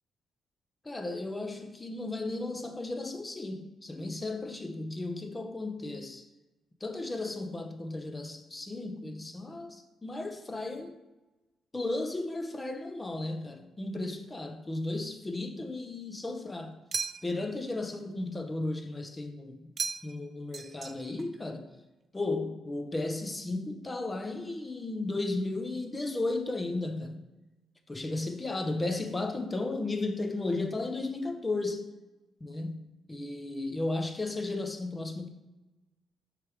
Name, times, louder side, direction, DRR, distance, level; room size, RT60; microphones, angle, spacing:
voice 1, 0.8-6.3 6.8-11.0 11.7-16.8 17.2-19.7 20.0-21.7 22.1-27.3 27.9-31.9 32.4-35.3, left 2 dB, 20° left, 0.8 m, -34 dB
sound 1, 16.9-17.5 19.8-20.3 20.5-21.3, right 5 dB, 45° right, 0.3 m, -36 dB
6.4 x 3.3 x 4.8 m
cardioid pair, 80°, 0 cm